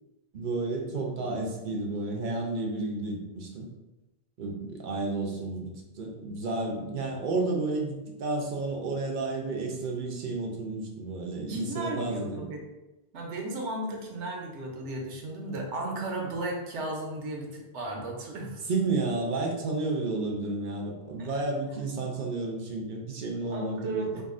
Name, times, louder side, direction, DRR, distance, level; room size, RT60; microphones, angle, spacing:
voice 1, 0.3-3.7 4.4-12.4 18.7-24.2, right 3 dB, 60° right, 0 dB, 0.6 m, -31 dB
voice 2, 11.5-12.6 13.1-18.7 21.2-21.4 23.5-24.2, right 2 dB, 85° right, 0 dB, 1.0 m, -35 dB
3.6 x 2.3 x 2.4 m, 1.0 s
omnidirectional pair, 1.1 m